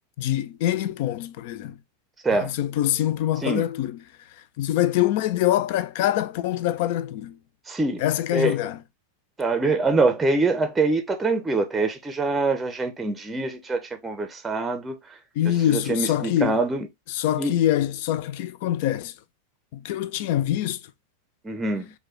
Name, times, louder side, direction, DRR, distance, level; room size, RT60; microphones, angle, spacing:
voice 1, 0.2-1.8 2.3-4.0 4.6-7.4 8.0-8.8 15.4-16.6 17.1-19.1 19.7-20.8, left 12 dB, 50° left, 0.3 m, -24 dB
voice 2, 7.7-8.0 8.3-8.6 9.4-15.0 15.5-16.9 17.4-17.6 21.4-21.9, right 3 dB, 10° right, 0.6 m, -24 dB
4.6 x 2.2 x 3.0 m
figure-of-eight pair, 90°, 0 cm